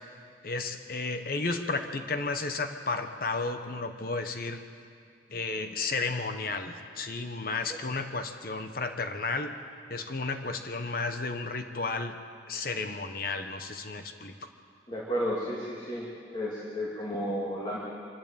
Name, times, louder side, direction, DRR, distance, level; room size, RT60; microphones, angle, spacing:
voice 1, 0.4-4.6 5.3-9.6 9.9-12.2 12.5-14.3, left 3 dB, 50° left, 7 dB, 1.1 m, -33 dB
voice 2, 14.9-16.0 16.3-17.8, equal, 25° left, -5 dB, 2.7 m, -32 dB
25.0 x 12.0 x 8.9 m, 2.2 s
head